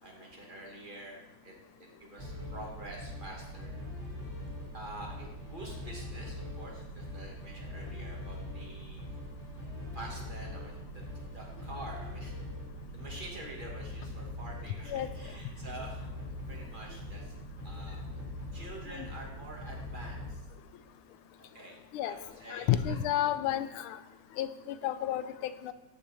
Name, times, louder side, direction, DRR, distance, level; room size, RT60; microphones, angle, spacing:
voice 1, 0.0-3.7 4.7-9.0 9.9-11.0 11.3-12.4 12.9-16.1 16.5-17.3 17.6-18.0 18.5-20.4 21.4-23.0 23.6-23.8, right 1 dB, 25° right, -1 dB, 1.4 m, -47 dB
sound 1, 2.2-20.3, left 1 dB, 50° right, 3.5 m, -42 dB
voice 2, 22.5-24.0 24.4-25.7, left 11 dB, 90° left, 12 dB, 1.5 m, -31 dB
13.0 x 6.5 x 3.2 m, 0.98 s
omnidirectional pair, 2.3 m